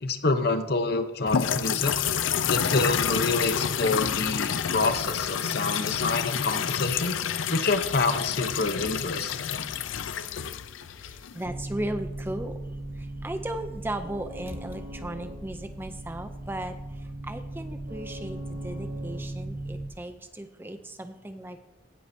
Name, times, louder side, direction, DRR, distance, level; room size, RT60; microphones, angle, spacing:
voice 1, 0.0-1.9 2.4-7.2 7.5-9.6, left 3 dB, 55° left, 8 dB, 0.8 m, -27 dB
sound 1, 1.3-11.4, left 8 dB, 90° left, 0.5 m, -29 dB
voice 2, 11.0-12.6 12.9-21.6, right 1 dB, 10° right, 8 dB, 0.5 m, -36 dB
sound 2, 11.4-19.9, right 1 dB, 60° right, 1.8 m, -37 dB
16.0 x 9.7 x 2.7 m, 0.97 s
head